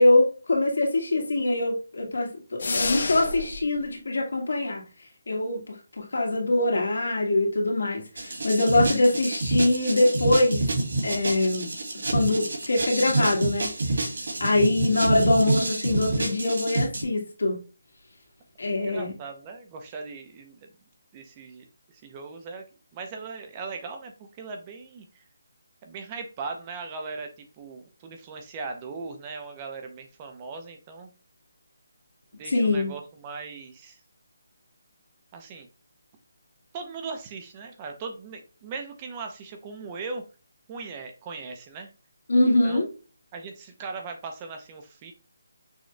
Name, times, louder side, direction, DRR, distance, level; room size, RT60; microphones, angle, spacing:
voice 1, 0.0-4.8 5.3-10.6 11.0-11.7 12.1-13.7 14.4-17.6 18.6-19.1 32.5-32.9 42.3-42.8, left 2 dB, 80° left, 0 dB, 1.9 m, -23 dB
sound 1, 2.6-3.6, left 3 dB, 55° left, 0.8 m, -28 dB
sound 2, 8.2-17.0, right 2 dB, 70° right, 2.2 m, -28 dB
voice 2, 18.8-20.6 21.1-21.6 21.9-22.7 22.9-25.2 25.8-31.1 32.3-34.0 35.3-35.7 36.7-40.2 40.7-41.9 42.6-42.9 43.3-45.1, right 4 dB, 15° right, 5 dB, 0.5 m, -39 dB
6.2 x 2.3 x 3.2 m, 0.33 s
hypercardioid pair, 175°, 0 cm